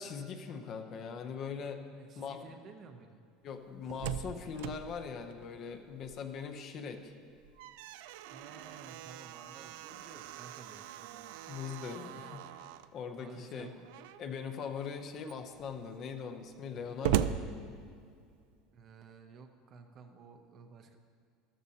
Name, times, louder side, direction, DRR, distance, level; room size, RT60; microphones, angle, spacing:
voice 1, 0.0-1.8 2.2-2.5 3.4-7.1 11.5-13.7 14.2-17.8, left 6 dB, 30° left, 6 dB, 0.6 m, -41 dB
voice 2, 1.9-3.3 8.3-11.3 13.2-13.9 18.7-21.0, right 5 dB, 25° right, 6 dB, 0.7 m, -53 dB
Slam, 3.6-6.4 6.7-6.8 7.3-12.9 13.8-14.4 14.9-15.0 15.2-18.3, right 11 dB, 70° right, 0.4 m, -39 dB
13.5 x 13.0 x 2.8 m, 2.3 s
cardioid pair, 180°, 0 cm